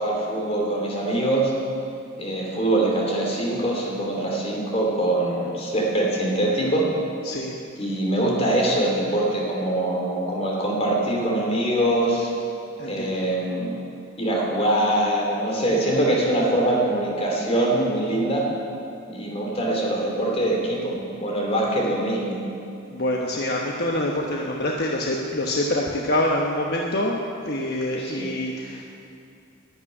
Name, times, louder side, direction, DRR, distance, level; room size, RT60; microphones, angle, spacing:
voice 1, 0.0-1.5 2.2-6.9 7.8-12.3 12.8-13.8 14.2-18.5 19.1-22.4 28.0-28.3, right 1 dB, 30° left, -2 dB, 2.8 m, -23 dB
voice 2, 7.2-7.6 12.8-13.1 22.9-28.8, left 1 dB, 55° left, -1 dB, 1.2 m, -26 dB
11.5 x 10.5 x 9.7 m, 2.6 s
head